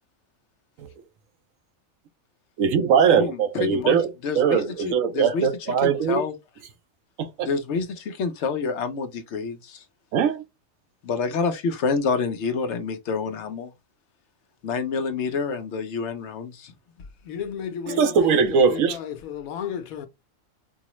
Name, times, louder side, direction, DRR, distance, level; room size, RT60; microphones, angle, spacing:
voice 1, 2.6-4.1 4.3-6.2 7.2-7.5 10.1-10.4 17.9-19.0, right 7 dB, 75° right, 1.0 m, -21 dB
voice 2, 3.1-4.0 4.2-5.5 5.8-6.3 7.4-9.8 11.0-13.7 14.6-16.7, left 5 dB, 65° left, 0.9 m, -28 dB
voice 3, 17.2-20.1, left 7 dB, 90° left, 1.1 m, -32 dB
4.6 x 2.0 x 2.9 m
omnidirectional pair, 1.4 m